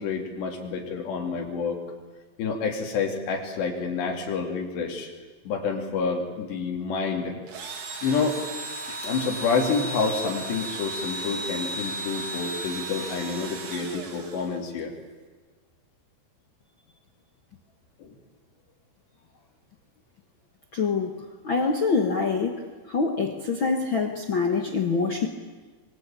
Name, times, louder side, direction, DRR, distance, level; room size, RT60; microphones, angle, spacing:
voice 1, 0.0-1.8 2.4-5.1 5.4-7.3 7.6-8.4 8.9-14.9 18.0-18.2, left 5 dB, 90° left, 1 dB, 5.0 m, -28 dB
Engine / Drill, 7.5-14.8, right 2 dB, 55° right, 3.8 m, -35 dB
voice 2, 20.7-21.1 21.4-22.6 22.9-25.3, left 4 dB, 75° left, 4 dB, 1.1 m, -25 dB
25.5 x 22.5 x 9.0 m, 1.3 s
omnidirectional pair, 4.8 m